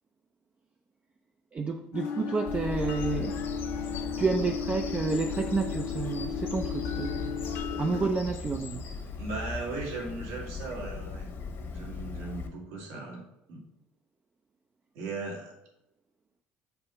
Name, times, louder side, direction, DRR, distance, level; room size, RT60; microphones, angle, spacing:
voice 1, 1.5-3.4 4.2-7.5 7.8-8.8, right 4 dB, 25° right, 4 dB, 0.4 m, -30 dB
chimes crowd noise, 1.9-8.1, left 6 dB, 70° left, 0.9 m, -35 dB
Bird vocalization bird call bird song, 2.5-12.5, left 5 dB, 50° left, 1.1 m, -38 dB
voice 2, 9.2-11.3 11.7-13.2 13.5-13.6 15.0-15.6, right 3 dB, 80° right, -2 dB, 1.9 m, -37 dB
6.8 x 2.8 x 5.4 m, 0.88 s
supercardioid pair, 100°, 5 cm